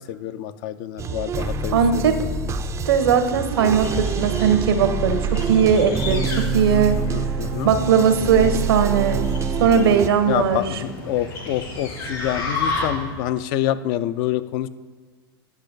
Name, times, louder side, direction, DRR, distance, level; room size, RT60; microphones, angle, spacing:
voice 1, 0.1-2.3 6.3-7.7 10.2-14.7, left 12 dB, 55° left, 13 dB, 0.4 m, -27 dB
sound 1, 1.0-10.1, right 5 dB, 25° right, 0.3 m, -26 dB
voice 2, 1.7-2.2 2.9-7.0 7.6-9.3 9.6-10.8, right 7 dB, 85° right, 8 dB, 0.8 m, -19 dB
sound 2, 3.4-13.2, left 2 dB, 75° left, 2.2 m, -32 dB
10.0 x 5.6 x 2.6 m, 1.5 s
hypercardioid pair, 100°, 12 cm